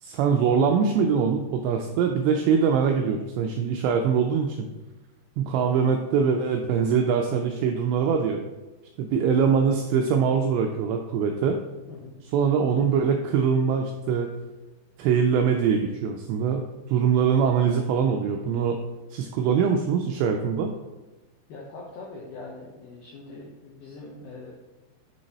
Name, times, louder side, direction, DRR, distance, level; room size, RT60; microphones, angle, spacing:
voice 1, 0.0-4.7 5.4-8.4 9.0-11.6 12.3-14.3 15.0-18.8 19.1-20.7, right 6 dB, 85° right, 3 dB, 2.5 m, -23 dB
voice 2, 21.5-24.5, left 3 dB, 85° left, -4 dB, 2.1 m, -42 dB
7.6 x 3.9 x 4.0 m, 1.1 s
omnidirectional pair, 5.5 m